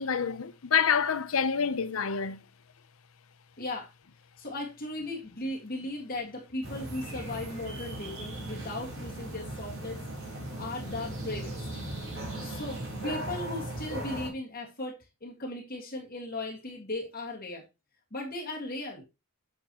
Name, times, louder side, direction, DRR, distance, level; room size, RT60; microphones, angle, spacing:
voice 1, 0.0-2.4, left 6 dB, 70° left, 0.7 m, -27 dB
voice 2, 3.6-3.9 4.4-11.8 12.1-17.6 18.1-19.0, left 2 dB, 40° left, 2.0 m, -37 dB
sound 1, 6.6-14.3, right 1 dB, 60° right, 4.8 m, -38 dB
8.7 x 6.6 x 3.0 m
head